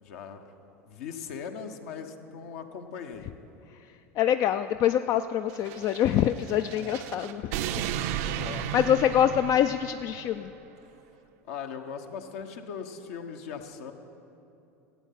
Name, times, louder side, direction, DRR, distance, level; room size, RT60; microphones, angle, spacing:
voice 1, 0.0-0.4 0.8-3.3 8.2-8.7 11.5-13.9, left 6 dB, 65° left, 6 dB, 1.0 m, -39 dB
voice 2, 4.2-7.8 8.1-8.3 8.7-10.5, left 10 dB, 45° left, 10 dB, 0.3 m, -25 dB
sound 1, 5.5-10.3, right 10 dB, 60° right, 0.5 m, -34 dB
15.0 x 8.5 x 5.8 m, 2.9 s
figure-of-eight pair, 80°, 8 cm